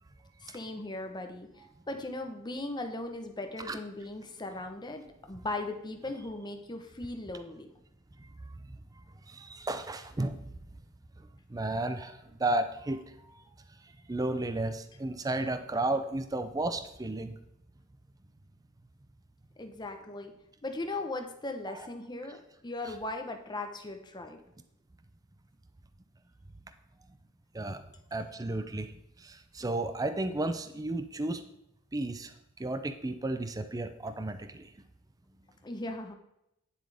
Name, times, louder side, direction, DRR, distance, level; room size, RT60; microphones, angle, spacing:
voice 1, 0.4-7.7 19.6-20.3 20.6-24.4 35.6-36.1, left 2 dB, 20° left, 5 dB, 0.9 m, -38 dB
voice 2, 8.2-8.8 9.3-10.5 11.2-13.4 13.8-17.4 27.5-27.8 28.1-31.4 31.9-34.7, right 2 dB, 15° right, 9 dB, 0.5 m, -34 dB
9.6 x 7.4 x 3.4 m, 0.83 s
head